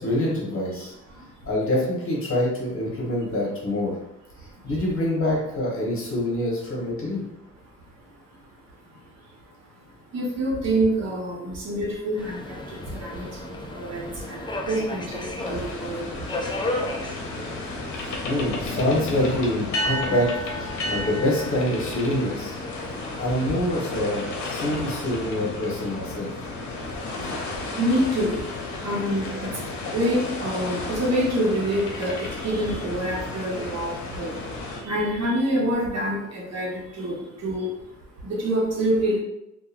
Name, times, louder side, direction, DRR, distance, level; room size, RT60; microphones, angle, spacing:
voice 1, 0.0-0.9 1.4-3.9 4.6-7.2 18.2-22.6 23.2-26.3, left 1 dB, 45° left, -4 dB, 1.1 m, -25 dB
voice 2, 1.1-1.5 4.4-4.7 7.6-18.3 20.7-20.9 22.7-23.2 23.5-23.6 26.2-37.8 38.2-39.2, right 1 dB, 60° right, -4 dB, 1.0 m, -28 dB
Subway metro underground, 12.2-23.8, left 2 dB, 15° left, 0.4 m, -35 dB
sound 1, 15.4-34.8, left 2 dB, 70° left, 0.7 m, -33 dB
2.9 x 2.4 x 2.4 m, 0.84 s
cardioid pair, 90°, 30 cm